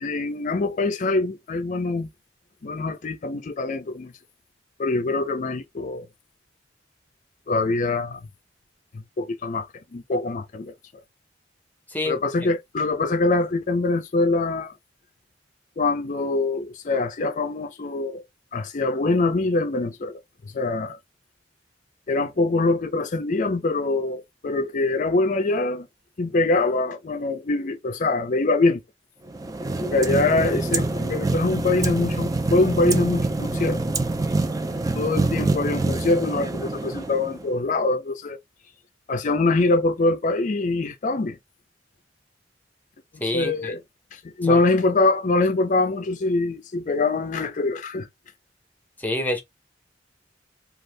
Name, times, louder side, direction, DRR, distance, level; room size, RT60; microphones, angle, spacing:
voice 1, 0.0-2.1 2.6-4.1 4.8-6.1 7.5-8.2 8.9-9.7 9.9-10.7 12.0-14.7 15.8-18.2 18.5-20.2 20.5-21.0 22.1-25.9 26.2-28.8 29.8-33.9 34.9-38.4 39.1-41.4 43.3-43.8 44.1-48.1, left 3 dB, 45° left, 0.4 m, -24 dB
voice 2, 11.9-12.5 43.2-43.7 44.4-44.6 49.0-49.4, left 1 dB, 10° left, 0.7 m, -28 dB
sound 1, 29.3-37.5, right 2 dB, 20° right, 0.3 m, -26 dB
2.6 x 2.4 x 3.2 m
head